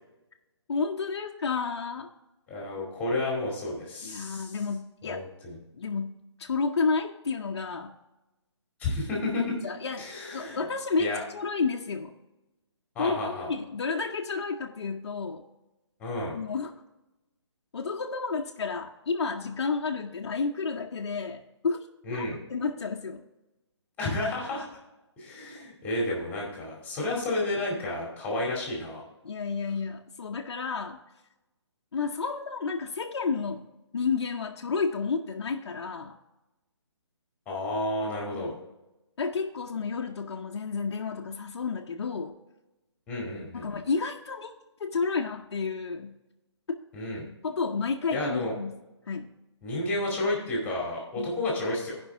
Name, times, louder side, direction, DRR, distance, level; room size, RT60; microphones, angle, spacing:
voice 1, 0.7-2.1 4.0-5.3 5.7-7.9 9.6-12.1 13.0-15.4 16.3-16.7 17.7-23.2 29.2-31.0 31.9-33.7 33.9-36.2 38.3-38.6 39.2-42.3 43.5-44.5 44.8-46.2 46.7-46.8 47.4-48.8 49.1-49.3 51.2-51.3, left 4 dB, 65° left, 0 dB, 0.8 m, -31 dB
voice 2, 2.5-4.6 5.0-5.6 8.8-9.6 10.0-10.6 11.0-11.2 12.9-13.5 16.0-16.4 22.0-22.4 24.0-24.7 25.2-29.0 37.5-38.6 43.1-43.8 46.9-47.3 48.1-48.5 49.6-52.0, left 2 dB, 10° left, -3 dB, 2.3 m, -31 dB
14.5 x 5.4 x 3.5 m, 0.99 s
hypercardioid pair, 160°, 15 cm